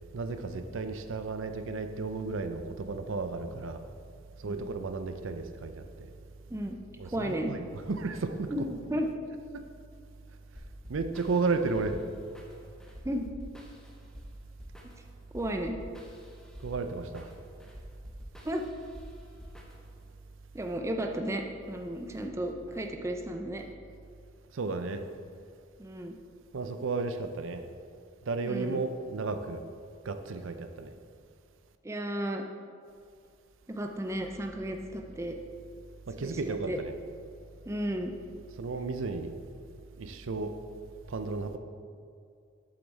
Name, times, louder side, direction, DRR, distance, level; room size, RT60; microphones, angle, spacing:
voice 1, 0.1-3.8 4.4-6.2 7.0-8.7 9.5-9.6 10.9-12.0 16.6-17.3 24.5-25.0 26.5-27.7 28.3-29.6 30.0-30.9 36.1-36.9 38.6-39.3 40.0-40.6 41.1-41.6, right 3 dB, 80° right, 8 dB, 0.5 m, -33 dB
voice 2, 7.1-7.5 8.5-9.1 13.0-13.3 15.3-15.8 18.4-18.6 20.5-23.6 25.8-26.2 28.5-28.8 31.8-32.4 33.7-35.4 36.2-36.8 37.7-38.1, equal, 15° right, 3 dB, 0.4 m, -33 dB
sound 1, 10.5-20.1, equal, 5° left, 0.8 m, -49 dB
8.0 x 7.1 x 4.1 m, 2.3 s
head